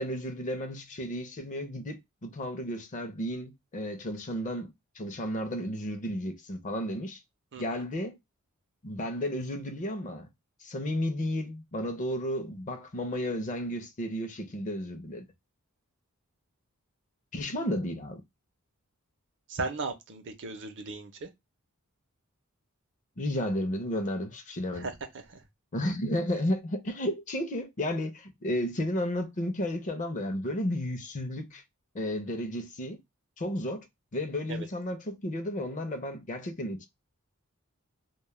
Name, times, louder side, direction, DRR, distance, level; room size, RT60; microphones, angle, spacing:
voice 1, 0.0-7.2 7.6-8.2 8.8-10.3 10.6-15.2 17.3-18.2 23.2-24.9 25.7-31.6 31.9-33.0 33.4-33.9 34.1-36.9, left 1 dB, 35° left, 0.5 m, -33 dB
voice 2, 7.5-7.8 19.5-21.3 24.7-25.4 34.5-34.7, right 3 dB, 55° right, 0.6 m, -37 dB
2.2 x 2.0 x 3.0 m
head